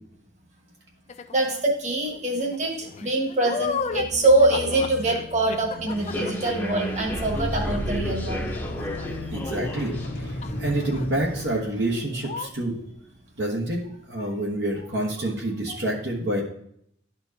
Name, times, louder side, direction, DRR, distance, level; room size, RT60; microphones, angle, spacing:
sound 1, 1.1-1.6 2.1-10.2 10.4-11.1 11.3-11.6 11.9-12.0 12.2-12.5, left 5 dB, 35° left, 0.4 m, -36 dB
voice 1, 1.3-8.5 15.7-15.8, right 2 dB, 40° right, 0 dB, 1.5 m, -24 dB
sound 2, 3.7-12.4, equal, 55° left, 1.0 m, -34 dB
Human voice / Subway metro underground, 5.9-11.4, left 1 dB, 10° left, 0.9 m, -35 dB
voice 2, 9.3-12.8 13.4-13.8 14.1-16.4, right 1 dB, 65° right, -2 dB, 1.2 m, -28 dB
11.5 x 4.4 x 2.8 m, 0.69 s
head